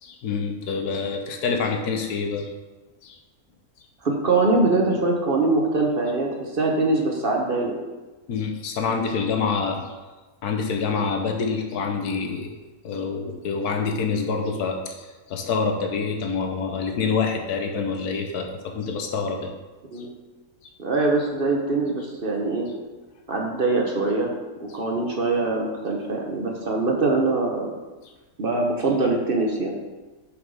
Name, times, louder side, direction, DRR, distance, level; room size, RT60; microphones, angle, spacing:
voice 1, 0.0-2.5 3.0-3.2 8.3-9.9 10.4-12.6 12.8-19.5, left 5 dB, 85° left, 3 dB, 1.4 m, -26 dB
voice 2, 4.0-7.8 19.9-20.1 20.8-22.7 23.3-24.3 24.6-27.7 28.4-29.8, right 3 dB, 45° right, 0 dB, 1.0 m, -23 dB
6.4 x 4.8 x 5.3 m, 1.2 s
omnidirectional pair, 1.6 m